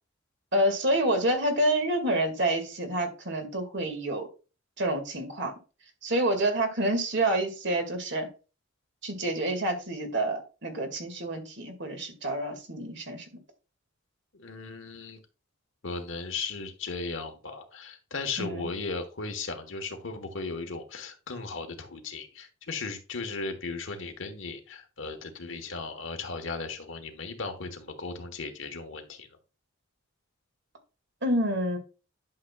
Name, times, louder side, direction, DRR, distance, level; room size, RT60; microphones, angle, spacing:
voice 1, 0.5-4.3 4.8-5.5 6.0-8.3 9.0-13.2 18.4-18.7 31.2-31.8, right 1 dB, 60° right, 5 dB, 2.1 m, -28 dB
voice 2, 14.3-15.2 15.8-29.3, left 4 dB, 70° left, 6 dB, 1.3 m, -36 dB
11.5 x 6.6 x 2.4 m, 0.33 s
head